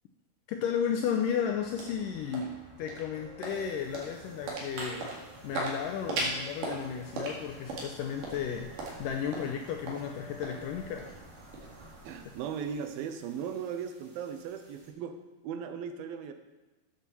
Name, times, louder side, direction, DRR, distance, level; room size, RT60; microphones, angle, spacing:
voice 1, 0.5-5.1 5.4-11.1, left 7 dB, 80° left, 4 dB, 2.0 m, -33 dB
sound 1, 0.8-13.2, right 2 dB, 60° right, 3.4 m, -40 dB
sound 2, 3.2-9.5 9.9-10.9, right 1 dB, 60° left, 2.5 m, -54 dB
sound 3, 3.4-14.9, right 2 dB, 45° right, 2.8 m, -53 dB
voice 2, 12.0-15.2 15.4-16.3, right 7 dB, 80° right, 8 dB, 2.4 m, -37 dB
8.5 x 7.0 x 6.9 m, 1.1 s
omnidirectional pair, 4.4 m